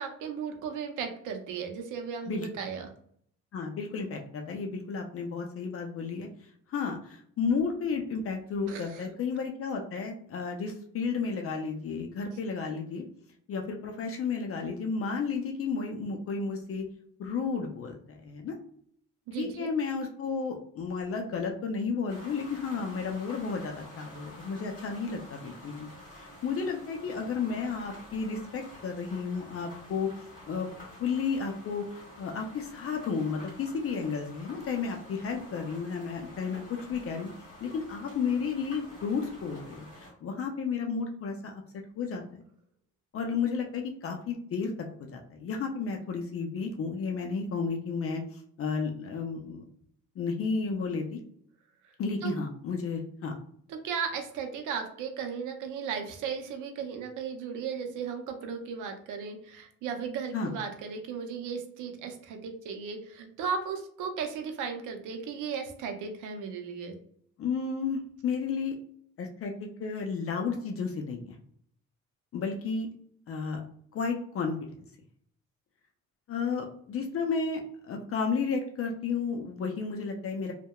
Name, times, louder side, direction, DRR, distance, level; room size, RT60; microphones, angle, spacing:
voice 1, 0.0-2.9 8.7-9.1 19.3-19.7 52.2-52.3 53.7-67.0, right 6 dB, 80° right, 5 dB, 0.6 m, -36 dB
voice 2, 3.5-6.3 6.7-13.0 13.5-16.8 17.2-18.5 19.4-25.9 26.2-30.1 30.5-30.7 31.0-31.9 32.2-36.6 36.9-37.3 37.6-41.6 42.0-42.4 43.1-44.7 45.1-49.6 50.2-51.2 52.0-53.3 60.3-60.5 67.4-68.7 69.2-71.4 72.3-72.9 73.3-73.6 73.9-74.5 76.3-80.5, left 5 dB, 50° left, 2 dB, 0.4 m, -32 dB
sound 1, 22.1-40.1, left 1 dB, 25° left, 1.5 m, -49 dB
2.7 x 2.1 x 2.2 m, 0.64 s
cardioid pair, 90°, 30 cm